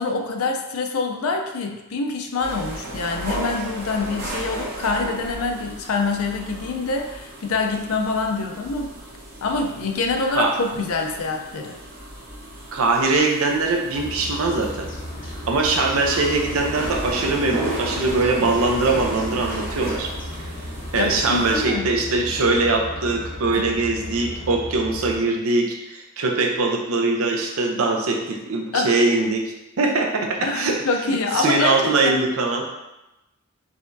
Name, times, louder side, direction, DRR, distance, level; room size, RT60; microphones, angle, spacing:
voice 1, 0.0-8.9 9.4-11.8 20.9-21.9 23.5-23.7 28.7-28.9 30.4-32.2, left 3 dB, 85° left, 3 dB, 0.5 m, -25 dB
sound 1, 2.4-21.7, right 1 dB, 45° right, 0.9 m, -35 dB
voice 2, 12.7-14.9 15.2-20.1 20.4-20.5 20.9-30.8 31.3-32.7, right 3 dB, 80° right, 2 dB, 0.6 m, -22 dB
sound 2, 13.9-25.2, left 1 dB, 40° left, 0.6 m, -35 dB
4.8 x 3.4 x 2.6 m, 0.96 s
head